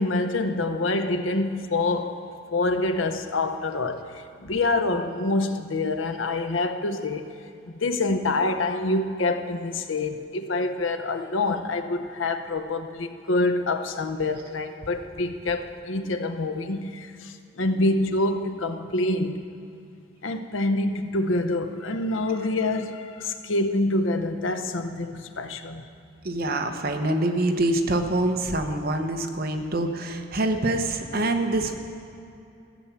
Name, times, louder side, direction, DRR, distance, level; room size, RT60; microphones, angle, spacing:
voice 1, 0.0-2.2 2.5-7.3 7.7-19.4 20.2-25.9, left 2 dB, 85° left, 0.8 m, -26 dB
voice 2, 26.2-31.7, right 1 dB, 50° right, 0.9 m, -25 dB
14.5 x 7.0 x 8.2 m
head